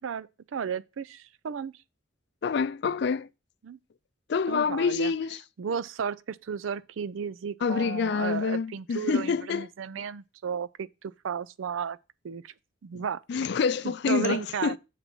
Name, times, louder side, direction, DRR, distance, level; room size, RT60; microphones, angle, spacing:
voice 1, 0.0-1.7 3.6-3.8 4.5-5.1 5.6-12.0 12.2-12.5 12.8-13.2 13.8-14.8, right 7 dB, 75° right, 0.4 m, -34 dB
voice 2, 2.4-3.3 4.3-5.4 7.6-9.7 12.9-13.0 13.3-14.8, left 5 dB, 55° left, 0.4 m, -27 dB
6.9 x 4.1 x 5.9 m
head